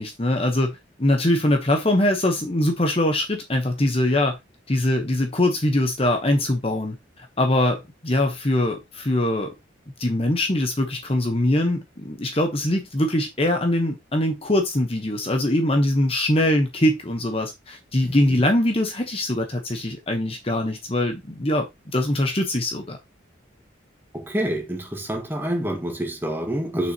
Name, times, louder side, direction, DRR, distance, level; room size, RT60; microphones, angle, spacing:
voice 1, 0.0-4.4 4.7-9.5 10.0-21.7 21.9-23.0, left 1 dB, 30° left, 1.0 m, -22 dB
voice 2, 24.1-26.9, right 1 dB, 10° right, 1.8 m, -27 dB
7.1 x 6.3 x 2.9 m
head